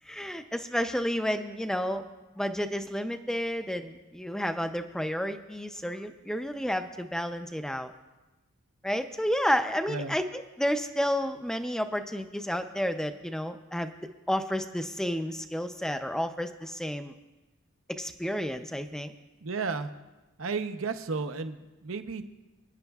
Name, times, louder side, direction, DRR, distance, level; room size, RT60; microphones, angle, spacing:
voice 1, 0.1-2.0 2.4-7.9 8.8-13.9 14.3-17.1 17.9-19.1, equal, 5° left, 8 dB, 0.5 m, -31 dB
voice 2, 19.4-19.9 20.4-22.2, right 4 dB, 75° right, 8 dB, 0.8 m, -33 dB
25.0 x 10.0 x 2.4 m, 1.1 s
head